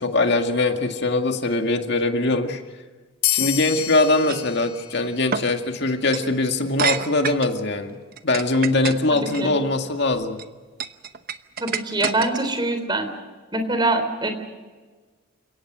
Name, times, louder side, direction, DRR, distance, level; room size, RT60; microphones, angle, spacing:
voice 1, 0.0-2.6 3.3-8.0 8.2-10.4, left 2 dB, 55° left, 5 dB, 2.1 m, -22 dB
sound 1, 3.2-6.3, left 12 dB, 80° left, 1.5 m, -29 dB
sound 2, 4.3-4.5 5.3-5.5 6.0-6.3 6.8-7.5 8.1-9.4 10.1-10.4 10.8-12.6, right 6 dB, 45° right, 1.0 m, -28 dB
voice 2, 11.6-13.1 13.5-14.3, right 2 dB, 20° right, 7 dB, 3.6 m, -23 dB
29.5 x 17.5 x 6.3 m, 1.4 s
head